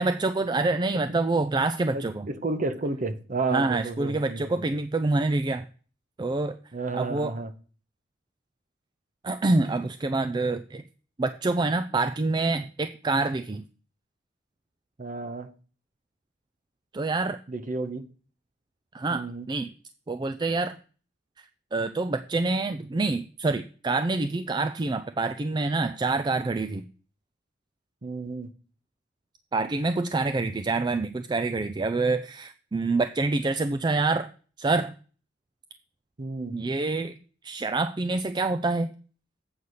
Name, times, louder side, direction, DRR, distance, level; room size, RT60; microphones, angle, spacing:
voice 1, 0.0-2.3 3.5-5.6 6.2-6.6 6.9-7.3 9.2-10.8 11.2-13.6 16.9-17.4 18.9-19.7 20.1-20.8 21.4-26.8 29.5-34.3 34.6-34.9 36.5-37.2 37.4-38.9, right 3 dB, 20° right, 0.3 m, -26 dB
voice 2, 1.9-4.8 6.7-7.5 15.0-15.5 17.5-18.1 19.1-19.5 28.0-28.5 36.2-36.6, right 3 dB, 40° right, 0.7 m, -32 dB
8.0 x 5.4 x 6.4 m
head